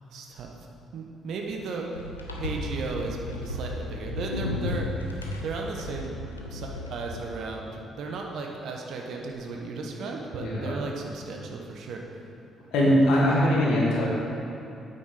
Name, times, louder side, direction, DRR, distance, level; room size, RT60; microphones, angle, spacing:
voice 1, 0.1-0.5 0.9-1.9 2.4-6.1 6.5-12.0, right 4 dB, 60° right, 1 dB, 1.2 m, -35 dB
sound 1, 1.9-7.3, left 2 dB, 90° left, 0.7 m, -34 dB
voice 2, 10.4-10.7 12.7-14.1, equal, 65° left, -4 dB, 1.8 m, -21 dB
9.1 x 8.6 x 5.0 m, 2.8 s
figure-of-eight pair, 45°, 0 cm